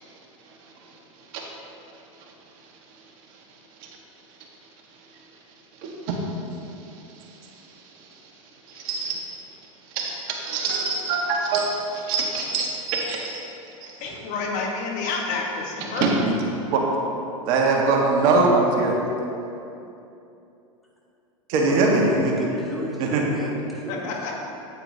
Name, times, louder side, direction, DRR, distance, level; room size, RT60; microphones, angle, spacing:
voice 1, 5.8-6.2 7.2-7.5 8.1-8.2 8.7-9.2 9.9-13.4 13.8-13.9 15.9-16.3 16.7-16.8 17.5-19.0 21.5-22.3 23.0-23.2, right 3 dB, 50° right, -1 dB, 1.4 m, -23 dB
voice 2, 13.8-16.1 23.9-24.3, left 4 dB, 45° left, 0 dB, 1.3 m, -29 dB
voice 3, 22.1-24.1, equal, ahead, -6 dB, 1.8 m, -33 dB
8.9 x 8.8 x 2.8 m, 2.8 s
hypercardioid pair, 105°, 17 cm